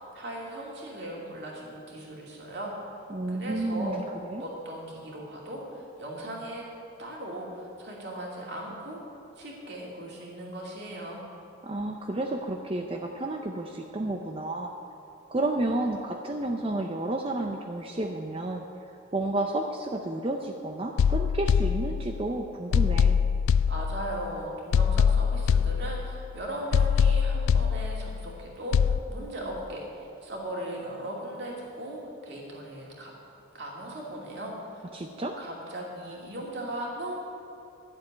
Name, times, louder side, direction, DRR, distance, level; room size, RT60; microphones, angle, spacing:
voice 1, 0.0-2.7 3.3-4.1 4.4-6.6 7.0-9.0 9.4-11.2 23.7-33.1 33.5-34.8 35.4-37.1, right 1 dB, 55° right, -3 dB, 2.6 m, -38 dB
voice 2, 3.1-4.4 11.6-14.7 15.3-18.6 19.1-23.2 34.9-35.4, right 2 dB, 25° right, 3 dB, 0.5 m, -31 dB
sound 1, 21.0-22.3 22.7-24.3 24.7-26.3 26.7-28.3 28.7-29.0, left 7 dB, 80° left, 0.3 m, -24 dB
11.0 x 7.6 x 9.5 m, 2.8 s
head